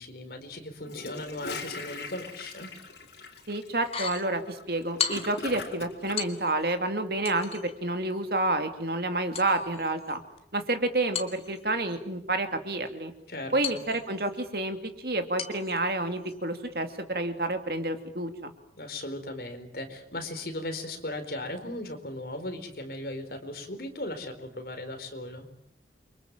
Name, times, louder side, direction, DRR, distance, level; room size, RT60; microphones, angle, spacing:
voice 1, 0.0-2.7 13.3-13.8 18.8-25.5, left 1 dB, 55° left, 6 dB, 4.5 m, -37 dB
Gurgling / Toilet flush, 0.8-6.2, left 3 dB, 80° left, 4.6 m, -40 dB
voice 2, 3.5-10.2 10.5-13.1 13.5-14.8 15.0-18.5, right 2 dB, 60° right, 7 dB, 2.7 m, -29 dB
sound 1, 3.8-4.3 5.0-5.5 6.2-6.7 7.2-7.8 9.3-10.4 11.1-12.0 13.6-14.4 15.4-15.8 16.2-16.4, left 7 dB, 35° left, 2.5 m, -36 dB
29.5 x 24.5 x 7.5 m, 0.72 s
head